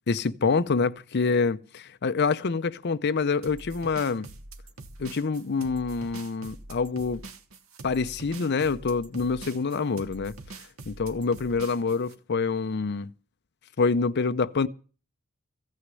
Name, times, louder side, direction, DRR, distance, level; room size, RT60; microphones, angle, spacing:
voice 1, 0.1-4.3 5.0-7.2 7.8-10.3 10.9-13.1 13.8-14.7, left 4 dB, 55° left, 0.6 m, -26 dB
sound 1, 3.4-12.1, right 2 dB, 80° right, 1.3 m, -44 dB
15.5 x 6.5 x 9.7 m
head